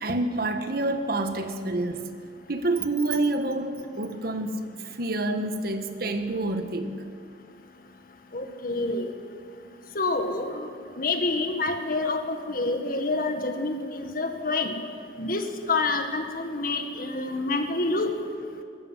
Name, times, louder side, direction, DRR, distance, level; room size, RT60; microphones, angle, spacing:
voice 1, 0.0-2.1 2.5-7.0, right 2 dB, 55° right, 7 dB, 1.4 m, -28 dB
voice 2, 8.3-9.1 10.0-10.7 11.0-14.7 15.2-18.1, left 3 dB, 50° left, 6 dB, 1.8 m, -27 dB
20.0 x 14.5 x 9.9 m, 2.2 s
head